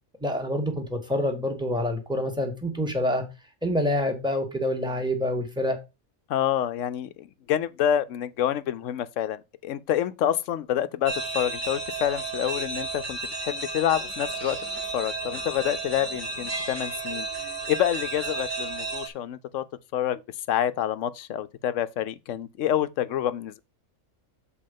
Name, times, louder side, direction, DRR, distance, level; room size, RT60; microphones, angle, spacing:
voice 1, 0.2-3.2 3.6-5.8, left 1 dB, 5° right, 1.7 m, -27 dB
voice 2, 6.3-14.6 14.9-17.3 17.7-19.6 19.9-20.2 20.5-23.6, left 11 dB, 70° left, 0.9 m, -27 dB
sound 1, 11.0-19.1, right 3 dB, 35° right, 1.8 m, -33 dB
7.6 x 4.2 x 5.3 m
omnidirectional pair, 1.5 m